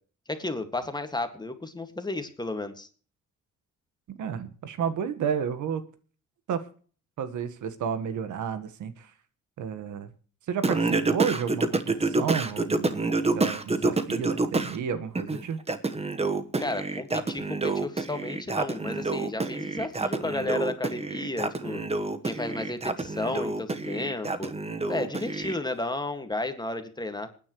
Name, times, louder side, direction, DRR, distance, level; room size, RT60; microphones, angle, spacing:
voice 1, 0.3-2.9 16.6-21.8 22.2-24.5 24.9-27.3, left 2 dB, 15° left, 8 dB, 1.9 m, -33 dB
voice 2, 4.2-5.8 6.5-6.6 7.2-9.1 9.6-10.1 10.5-13.0 13.3-15.6, right 7 dB, 75° right, 11 dB, 1.5 m, -31 dB
Singing, 10.6-14.8 15.2-25.6, right 3 dB, 20° right, 1.2 m, -28 dB
27.0 x 9.9 x 3.1 m, 0.41 s
cardioid pair, 90°, 30 cm